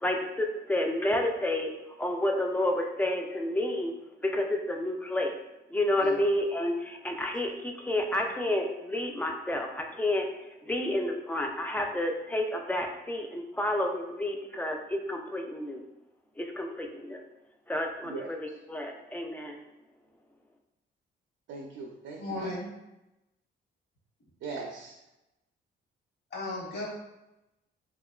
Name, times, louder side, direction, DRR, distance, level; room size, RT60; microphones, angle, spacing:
voice 1, 0.0-1.7 2.0-3.9 4.2-5.3 5.7-10.3 10.6-15.8 16.4-17.2 17.7-19.6, left 1 dB, 10° left, 2 dB, 0.3 m, -30 dB
voice 2, 21.5-22.5 24.4-25.0, right 3 dB, 70° right, 0 dB, 0.4 m, -39 dB
voice 3, 22.2-22.7 26.3-26.9, left 2 dB, 60° left, -4 dB, 1.1 m, -35 dB
2.8 x 2.2 x 2.2 m, 0.94 s
cardioid pair, 90°, 20 cm